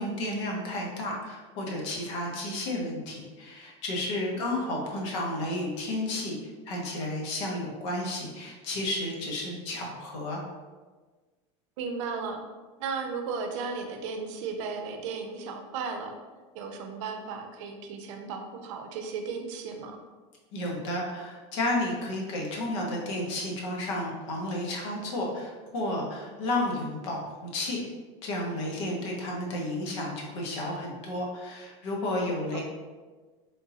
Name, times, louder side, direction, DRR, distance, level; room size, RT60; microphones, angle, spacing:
voice 1, 0.0-6.3 6.7-10.4 20.5-27.9 28.2-32.6, left 1 dB, 70° left, -1 dB, 1.0 m, -32 dB
voice 2, 4.4-4.7 11.8-12.4 12.8-16.2 16.5-20.0 28.9-29.0 32.5-32.6, right 5 dB, 75° right, 4 dB, 0.5 m, -35 dB
3.6 x 2.7 x 2.7 m, 1.3 s
supercardioid pair, 135°, 16 cm